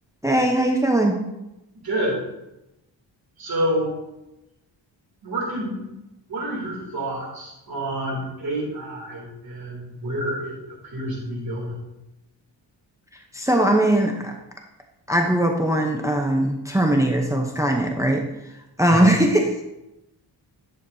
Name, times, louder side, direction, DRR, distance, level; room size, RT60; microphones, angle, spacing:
voice 1, 0.2-1.2 13.3-14.3 15.1-18.2 18.8-19.6, right 1 dB, 5° right, 2 dB, 0.7 m, -20 dB
voice 2, 1.8-2.2 3.4-3.9 5.2-5.8 6.3-11.8 18.9-19.0, right 1 dB, 50° right, -3 dB, 2.9 m, -28 dB
10.5 x 6.5 x 2.7 m, 0.92 s
wide cardioid pair, 120°, 44 cm